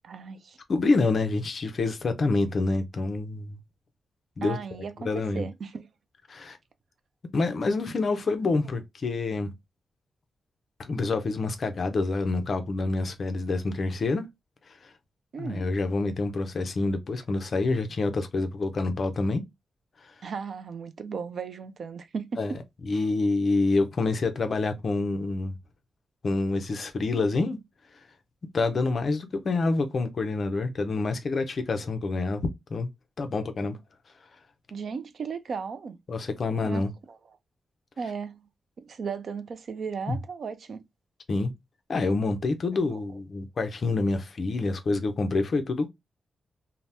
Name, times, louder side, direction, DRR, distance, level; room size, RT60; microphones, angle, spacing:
voice 1, 0.0-0.6 4.4-5.9 15.3-15.6 20.2-22.4 22.9-23.1 34.7-36.0 36.6-36.9 38.0-38.4 38.8-40.8 42.7-43.0, right 5 dB, 50° right, 0.3 m, -36 dB
voice 2, 0.7-3.6 4.4-4.6 5.0-5.5 6.3-6.6 7.3-9.5 10.8-14.2 14.7-14.9 15.4-19.4 22.4-22.5 22.8-25.6 26.2-27.6 28.5-32.9 33.2-33.8 36.1-36.9 40.1-40.2 41.3-41.5 41.9-45.9, left 3 dB, 40° left, 0.5 m, -27 dB
2.8 x 2.0 x 3.2 m
wide cardioid pair, 175°, 0 cm